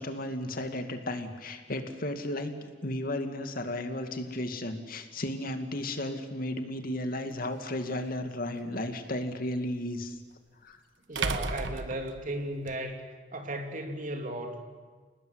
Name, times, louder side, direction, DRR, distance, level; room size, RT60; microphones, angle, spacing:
voice 1, 0.0-10.2 10.6-10.8, left 1 dB, 55° left, 6 dB, 2.4 m, -34 dB
Classroom door close, 7.3-7.4 10.0-10.1 11.2-12.8, right 4 dB, 75° right, 1.3 m, -33 dB
voice 2, 11.1-13.0 13.3-14.6, right 1 dB, 45° right, 4 dB, 3.3 m, -35 dB
28.0 x 19.5 x 9.5 m, 1.4 s
head